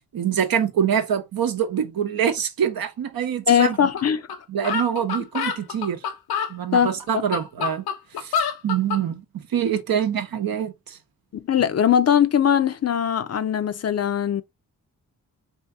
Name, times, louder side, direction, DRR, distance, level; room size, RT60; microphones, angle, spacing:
voice 1, 0.1-3.9 4.5-6.0 6.5-7.8 8.2-11.0, right 8 dB, 70° right, 0.8 m, -25 dB
voice 2, 3.5-4.2 6.7-7.2 11.3-14.4, left 8 dB, 45° left, 0.5 m, -20 dB
sound 1, 4.0-4.1 4.3-4.4 4.6-6.5 7.1-9.0, left 6 dB, 85° left, 0.6 m, -27 dB
2.8 x 2.8 x 3.5 m
supercardioid pair, 40°, 37 cm